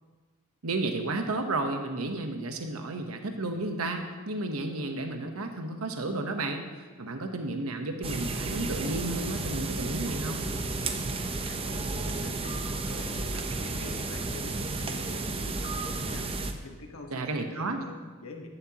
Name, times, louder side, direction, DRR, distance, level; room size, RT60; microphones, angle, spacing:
voice 1, 0.6-6.7 7.0-10.4 17.1-17.8, right 2 dB, 90° right, 5 dB, 1.0 m, -32 dB
sound 1, 8.0-16.5, right 3 dB, 25° right, 0.7 m, -32 dB
voice 2, 11.4-16.3 16.6-18.5, left 2 dB, 75° left, 3 dB, 1.3 m, -45 dB
14.5 x 11.0 x 2.9 m, 1.4 s
head